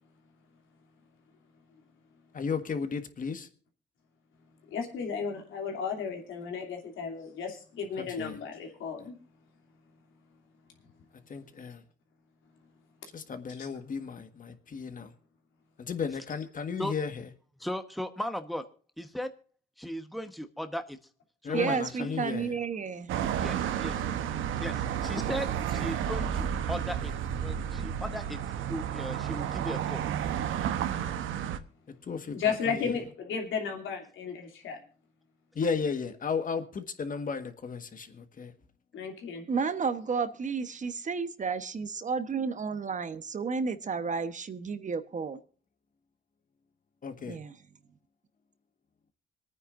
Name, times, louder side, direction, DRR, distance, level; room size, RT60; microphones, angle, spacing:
voice 1, 2.3-3.5 8.0-8.4 11.3-11.8 13.1-15.1 15.8-17.3 21.4-22.5 32.1-33.0 35.5-38.5 47.0-47.4, left 5 dB, 45° left, 1.6 m, -34 dB
voice 2, 4.7-9.2 13.5-13.7 32.3-34.8 38.9-39.4, left 6 dB, 80° left, 2.8 m, -34 dB
voice 3, 17.6-18.7 19.0-19.3 19.8-21.0 21.4-22.2 23.4-24.1 24.6-27.1 27.4-28.4 28.7-30.0, equal, ahead, 1.1 m, -37 dB
voice 4, 21.5-23.2 39.5-45.4 47.2-47.7, right 5 dB, 40° right, 1.1 m, -32 dB
sound 1, 23.1-31.6, right 9 dB, 80° right, 1.0 m, -31 dB
26.0 x 9.5 x 2.6 m
cardioid pair, 90°, 20 cm